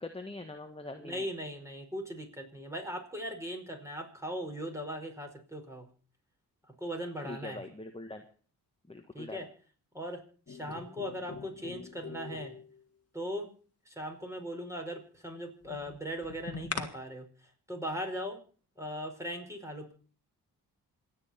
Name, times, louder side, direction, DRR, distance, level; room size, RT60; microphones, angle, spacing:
voice 1, 0.0-1.3 7.2-8.2 8.9-9.4, left 2 dB, 15° left, 6 dB, 1.5 m, -43 dB
voice 2, 1.0-5.9 6.8-7.6 9.1-9.5 9.9-10.2 10.5-12.5 13.1-13.5 13.8-17.3 17.7-18.4 18.8-19.9, equal, 5° right, 3 dB, 5.1 m, -39 dB
sound 1, 10.5-12.8 15.6-16.9, left 5 dB, 40° left, 1.9 m, -42 dB
27.0 x 9.1 x 4.4 m, 0.42 s
supercardioid pair, 50°, 40 cm